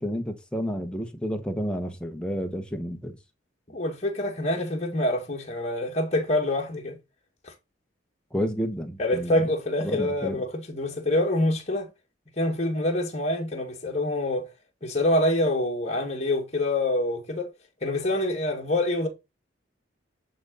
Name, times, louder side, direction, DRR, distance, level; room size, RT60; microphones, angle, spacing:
voice 1, 0.0-3.2 8.3-9.4 9.8-10.4, equal, 5° left, 1.1 m, -30 dB
voice 2, 3.7-7.0 7.4-7.5 9.0-11.9 12.4-14.5 14.8-17.5 17.8-19.1, left 1 dB, 35° left, 2.1 m, -26 dB
10.5 x 3.9 x 5.5 m
head